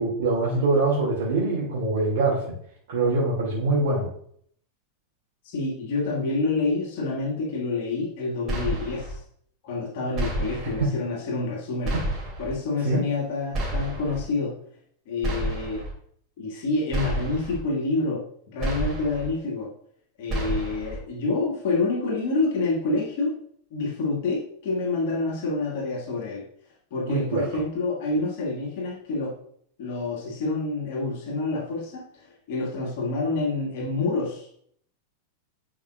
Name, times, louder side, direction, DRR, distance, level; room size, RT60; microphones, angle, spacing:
voice 1, 0.0-2.5 2.9-4.1 10.5-10.9 12.8-13.0 27.1-27.5, right 3 dB, 55° right, -5 dB, 2.6 m, -24 dB
voice 2, 5.4-9.2 9.6-12.0 12.4-14.6 15.1-15.9 16.4-18.3 18.5-19.7 20.2-23.4 23.7-26.5 26.9-29.4 29.8-34.5, left 3 dB, 50° left, -2 dB, 2.0 m, -27 dB
sound 1, 8.5-9.2 10.1-10.8 11.8-12.5 13.5-14.2 15.2-15.9 16.9-17.6 18.6-19.3 20.3-21.0, right 1 dB, 30° right, 2.9 m, -29 dB
10.0 x 5.2 x 2.5 m, 0.63 s
figure-of-eight pair, 90°, 0 cm